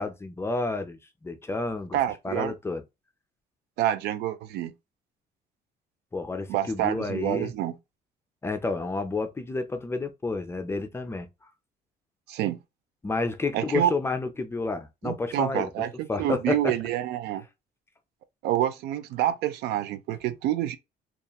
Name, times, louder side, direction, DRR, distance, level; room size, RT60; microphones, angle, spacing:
voice 1, 0.0-2.0 2.2-2.8 6.1-7.5 8.4-11.5 13.0-15.7 16.1-16.7, left 3 dB, 15° left, 0.4 m, -30 dB
voice 2, 1.9-2.5 3.8-4.7 6.5-7.8 12.3-12.6 13.5-13.9 15.0-17.4 18.4-20.8, right 12 dB, 80° right, 0.4 m, -27 dB
2.8 x 2.3 x 2.2 m
cardioid pair, 110°, 17 cm